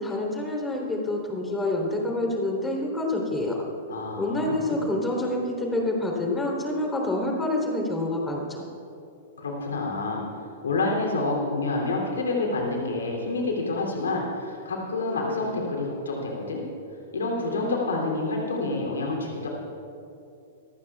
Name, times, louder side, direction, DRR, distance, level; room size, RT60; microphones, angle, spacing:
voice 1, 0.0-3.6 4.2-8.6, left 1 dB, 10° left, -1 dB, 3.7 m, -27 dB
voice 2, 3.9-4.8 9.4-10.2 10.6-16.6 17.1-19.5, left 2 dB, 75° left, -1 dB, 3.2 m, -28 dB
25.5 x 15.0 x 2.5 m, 2.7 s
figure-of-eight pair, 105°, 0 cm